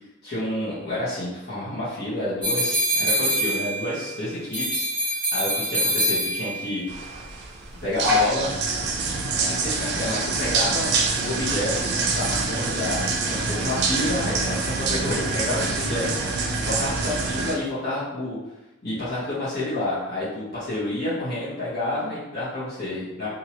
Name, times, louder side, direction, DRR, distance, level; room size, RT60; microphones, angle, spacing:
voice 1, 0.2-4.8 5.3-6.8 7.8-8.5 9.4-10.9 11.2-13.0 13.3-16.1 16.7-18.4 18.8-23.3, left 1 dB, 50° left, -11 dB, 1.2 m, -29 dB
sound 1, 2.4-4.1 4.5-6.7, equal, 5° left, 1.4 m, -24 dB
sound 2, 6.9-17.5, right 3 dB, 55° right, 0.5 m, -25 dB
2.8 x 2.6 x 3.0 m, 0.93 s
head